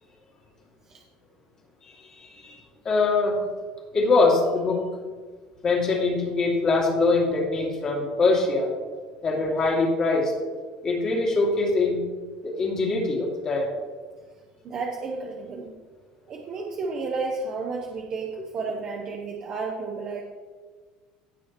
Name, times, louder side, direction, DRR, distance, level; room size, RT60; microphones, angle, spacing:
voice 1, 1.8-2.6 2.8-3.4 3.9-4.8 5.6-8.7 9.2-10.3 10.8-12.0 12.4-13.7, left 3 dB, 30° left, -2 dB, 2.4 m, -23 dB
voice 2, 14.6-15.7 16.3-20.2, right 4 dB, 35° right, 0 dB, 0.9 m, -32 dB
16.0 x 6.2 x 3.0 m, 1.5 s
cardioid pair, 160°, 2 cm